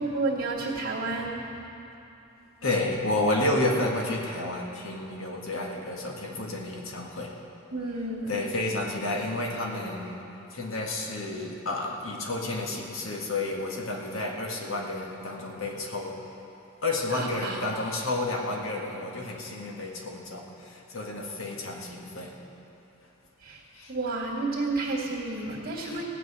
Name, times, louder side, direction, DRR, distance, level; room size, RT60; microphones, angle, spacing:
voice 1, 0.0-1.4 7.7-8.4 17.1-17.6 23.4-23.6 23.9-26.0, right 3 dB, 50° right, -6 dB, 1.9 m, -31 dB
voice 2, 2.6-7.3 8.3-10.2 10.5-16.2 16.8-22.4 23.7-23.9 25.5-25.6 25.8-26.0, left 2 dB, 90° left, 0 dB, 1.8 m, -31 dB
17.5 x 6.1 x 8.6 m, 2.9 s
head